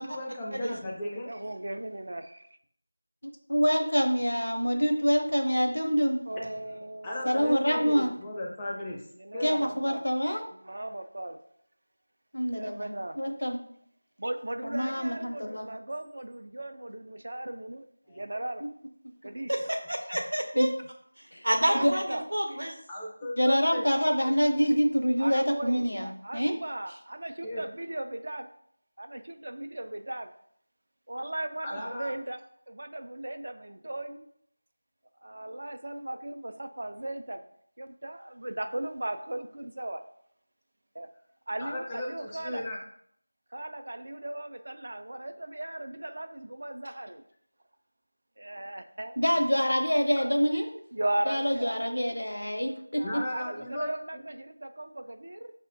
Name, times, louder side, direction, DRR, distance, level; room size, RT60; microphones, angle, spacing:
voice 1, 0.0-1.3 7.0-9.1 9.3-9.7 18.1-18.2 22.9-23.8 27.4-27.6 31.6-32.1 41.6-42.8 53.0-53.9 54.1-54.2, left 1 dB, 10° left, -4 dB, 0.4 m, -35 dB
voice 2, 1.1-2.5 6.3-8.1 9.2-10.0 10.5-11.4 12.5-13.2 14.2-18.6 19.2-19.8 21.7-22.3 25.2-28.5 29.0-30.3 31.1-32.4 32.7-34.3 35.2-37.4 37.8-40.0 40.9-41.1 41.5-42.7 43.5-47.2 48.4-49.2 49.6-50.4 50.9-52.2 52.9-55.5, right 1 dB, 55° right, 7 dB, 0.3 m, -37 dB
voice 3, 3.5-6.2 7.2-8.1 9.4-10.4 12.3-13.6 14.6-15.7 20.6-20.7 21.3-21.4 21.7-21.9 23.4-26.6 49.2-50.8 51.3-53.0, equal, 80° left, 4 dB, 0.6 m, -26 dB
voice 4, 19.5-20.7 21.4-22.8, right 1 dB, 75° right, 3 dB, 0.7 m, -28 dB
5.2 x 2.1 x 2.6 m, 0.67 s
figure-of-eight pair, 170°, 0 cm